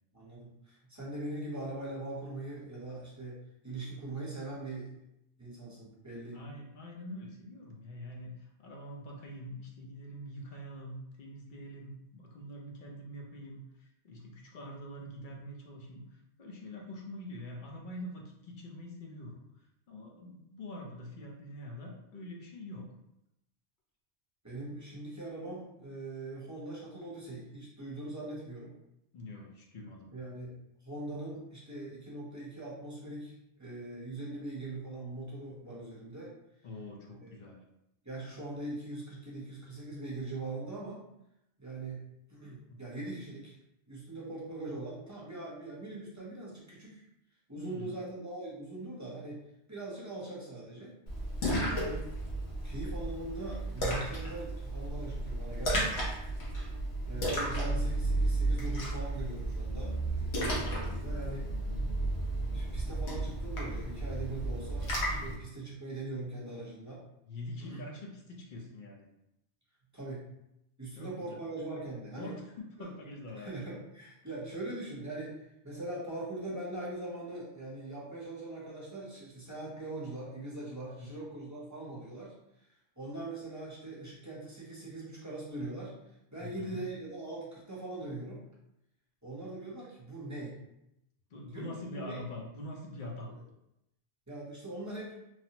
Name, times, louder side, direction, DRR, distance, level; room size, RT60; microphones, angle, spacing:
voice 1, 0.1-3.4 3.6-4.9 5.4-6.4 24.4-28.7 30.1-30.6 30.8-33.3 33.6-36.3 37.2-37.3 38.0-41.0 41.6-42.0 42.3-43.5 43.9-47.0 47.5-49.4 49.7-50.9 51.6-52.1 52.6-56.1 57.0-61.5 62.5-64.9 65.2-67.0 67.6-67.9 69.9-70.3 70.8-72.3 72.8-72.9 73.4-82.3 83.0-85.9 86.3-88.4 89.2-90.6 91.5-92.2 92.9-93.4 94.3-95.2, right 2 dB, 20° right, -7 dB, 0.7 m, -41 dB
voice 2, 6.3-19.4 19.9-22.9 29.1-30.1 36.6-37.6 42.7-42.8 47.6-48.0 61.5-62.0 67.3-69.1 71.0-71.4 72.2-73.5 81.0-81.1 86.4-86.8 91.3-93.3, left 1 dB, 55° left, 0 dB, 0.7 m, -45 dB
Splash splatter, 51.1-65.3, right 1 dB, 70° left, 1.0 m, -33 dB
3.1 x 2.0 x 2.8 m, 0.84 s
omnidirectional pair, 1.1 m